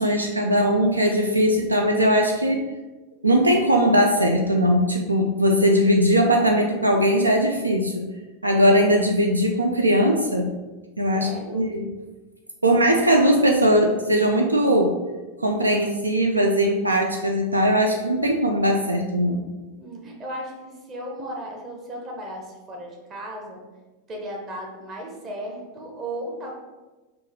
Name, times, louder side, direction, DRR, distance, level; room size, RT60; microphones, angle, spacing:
voice 1, 0.0-2.6 3.2-8.1 8.4-10.5 11.0-11.9 12.6-14.9 15.4-19.4, equal, 80° right, 2 dB, 0.4 m, -20 dB
voice 2, 11.1-11.6 19.8-23.6 24.1-26.5, right 1 dB, 30° right, -1 dB, 0.9 m, -35 dB
3.6 x 2.5 x 4.3 m, 1.2 s
figure-of-eight pair, 90°, 0 cm